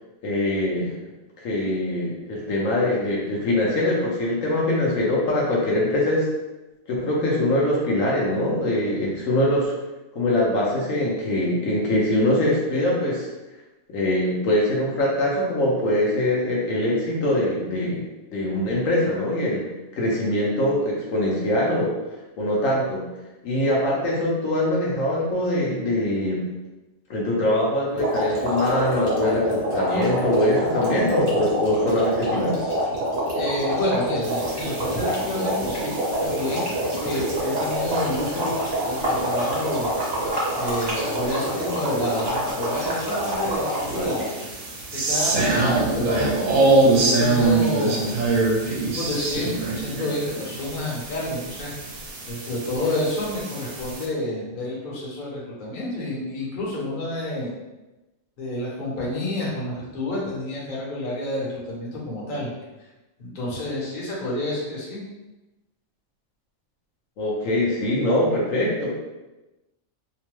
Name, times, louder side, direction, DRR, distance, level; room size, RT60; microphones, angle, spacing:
voice 1, 0.2-0.9 1.4-6.3 6.9-9.7 10.1-13.3 13.9-18.0 18.3-19.7 19.9-21.9 22.4-23.0 23.4-26.4 27.1-32.7 67.2-68.9, left 1 dB, 75° left, -4 dB, 1.0 m, -23 dB
sound 1, 27.9-44.4, right 1 dB, 50° right, 1.2 m, -26 dB
voice 2, 33.3-36.7 37.0-39.9 40.5-44.3 45.0-48.2 48.7-51.8 52.3-57.5 58.4-62.5 63.2-65.0, left 1 dB, 45° left, -5 dB, 0.9 m, -29 dB
sound 2, 34.2-54.1, right 3 dB, 75° right, 1.0 m, -26 dB
2.9 x 2.1 x 3.0 m, 1.0 s
omnidirectional pair, 1.4 m